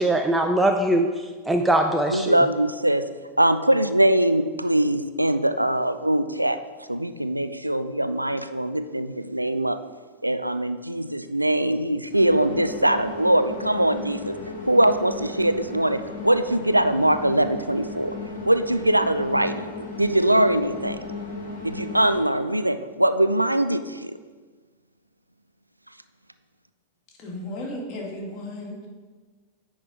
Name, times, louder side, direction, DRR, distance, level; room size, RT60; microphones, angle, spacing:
voice 1, 0.0-2.4, right 1 dB, 5° right, 4 dB, 0.4 m, -22 dB
voice 2, 2.1-3.1 3.4-6.6 6.9-9.8 10.2-14.4 14.7-18.1 18.4-21.0 21.6-24.1, right 1 dB, 85° right, 11 dB, 0.3 m, -22 dB
sound 1, 12.1-22.2, left 2 dB, 65° left, 1.4 m, -35 dB
voice 3, 27.2-28.9, left 1 dB, 40° left, -2 dB, 2.0 m, -34 dB
9.8 x 4.1 x 4.7 m, 1.4 s
figure-of-eight pair, 90°, 0 cm